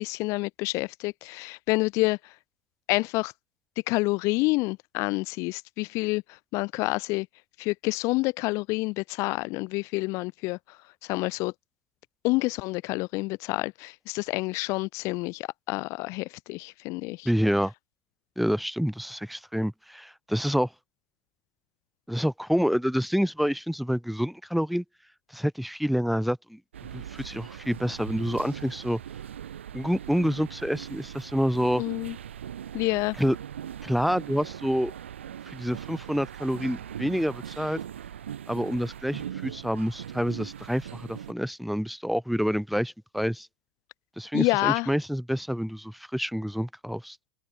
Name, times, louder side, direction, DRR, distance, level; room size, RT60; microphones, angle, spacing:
voice 1, 0.0-2.3 2.9-3.3 3.9-7.3 7.6-10.8 11.0-11.5 12.2-17.3 31.8-32.1 32.7-33.2 44.3-44.9, left 24 dB, 55° left, 0.8 m, -28 dB
voice 2, 17.2-17.7 18.4-20.7 22.1-24.8 25.3-26.6 26.9-29.0 29.7-31.8 33.2-33.4 33.8-34.9 35.5-37.8 38.5-43.5 44.2-47.2, equal, ahead, 1.3 m, -27 dB
sound 1, 26.7-41.3, right 9 dB, 80° right, 3.0 m, -40 dB
open air
hypercardioid pair, 80°, 6 cm